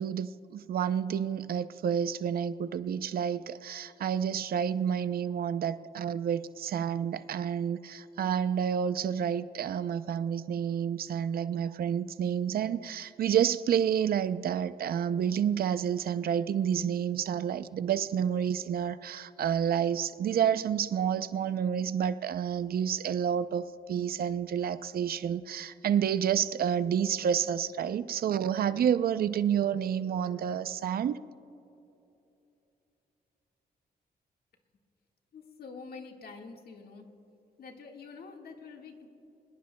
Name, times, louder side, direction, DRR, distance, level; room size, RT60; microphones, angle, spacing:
voice 1, 0.0-31.2, right 8 dB, 65° right, 13 dB, 0.5 m, -29 dB
voice 2, 35.3-37.0 37.6-39.1, left 4 dB, 70° left, 2 dB, 1.7 m, -46 dB
23.5 x 21.0 x 2.2 m, 2.9 s
wide cardioid pair, 140°, 16 cm